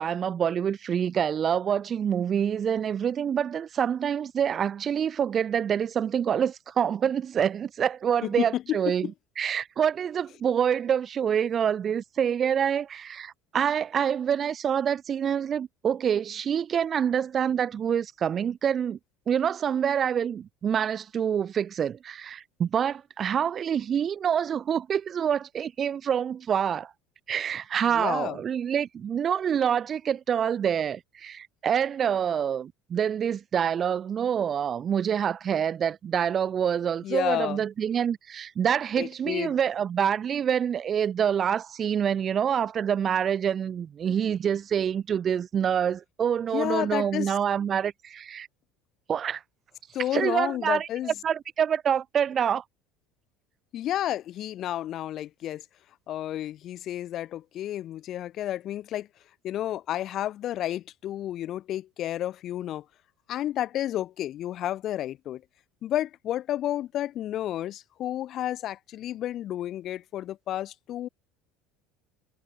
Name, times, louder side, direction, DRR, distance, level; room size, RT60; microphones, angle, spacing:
voice 1, 0.0-9.1 9.4-19.0 19.3-26.9 27.3-48.5 49.1-49.4 50.1-50.9 51.2-52.6, right 8 dB, 40° right, 0.4 m, -26 dB
voice 2, 8.2-9.1 27.9-28.4 37.0-37.6 39.0-39.6 46.5-47.4 49.9-51.1 53.7-55.6 56.1-59.1 59.4-62.8 63.3-65.4 65.8-71.1, left 12 dB, 50° left, 1.0 m, -31 dB
supercardioid pair, 95°, 0 cm